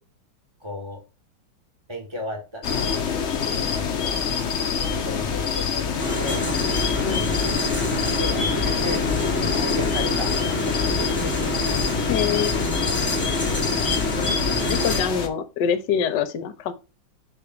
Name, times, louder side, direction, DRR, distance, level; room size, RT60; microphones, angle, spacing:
voice 1, 0.6-1.0 1.9-2.9 3.5-4.2 4.9-6.7 7.3-7.5 7.8-12.0, left 1 dB, 15° right, 1.2 m, -35 dB
sound 1, 2.6-15.3, left 6 dB, 80° left, 0.6 m, -26 dB
sound 2, 6.0-15.0, left 1 dB, 15° left, 0.4 m, -27 dB
voice 2, 12.1-12.6 14.2-14.3 14.7-16.7, left 8 dB, 65° left, 1.2 m, -25 dB
6.7 x 3.2 x 5.2 m
omnidirectional pair, 2.3 m